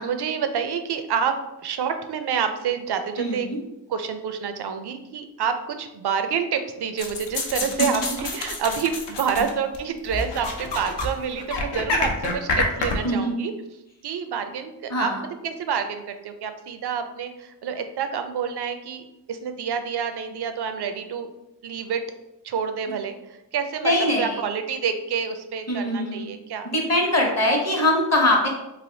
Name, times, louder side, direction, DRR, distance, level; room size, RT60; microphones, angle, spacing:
voice 1, 0.0-1.4 1.6-3.5 3.9-13.5 14.0-15.1 15.4-21.3 21.6-22.0 22.4-23.2 23.5-23.9 24.2-26.7, right 7 dB, 65° right, 8 dB, 0.5 m, -28 dB
voice 2, 3.2-3.6 7.8-7.9 9.4-9.5 13.0-13.3 14.9-15.2 23.8-24.4 25.7-26.3 26.6-28.5, left 1 dB, 35° left, 0 dB, 0.8 m, -22 dB
sound 1, 7.0-9.8 10.1-11.1 11.4-13.0, left 3 dB, 75° left, 0.6 m, -27 dB
3.3 x 2.4 x 2.7 m, 0.93 s
cardioid pair, 50°, 43 cm